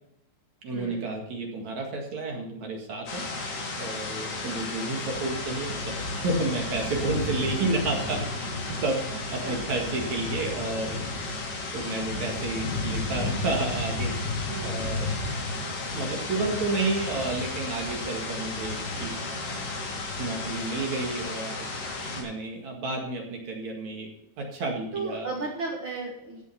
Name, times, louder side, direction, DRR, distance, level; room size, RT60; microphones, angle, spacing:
voice 1, 0.6-3.2 3.8-9.0 9.3-11.0 11.7-14.1 14.6-15.1 15.9-19.1 20.2-21.7 22.1-24.1 24.4-25.3, right 3 dB, 50° right, 1 dB, 2.6 m, -31 dB
sound 1, 3.1-22.2, left 2 dB, 60° left, 5.1 m, -32 dB
voice 2, 24.9-26.4, right 3 dB, 75° right, -1 dB, 1.1 m, -34 dB
15.5 x 7.1 x 5.8 m, 0.80 s
omnidirectional pair, 5.3 m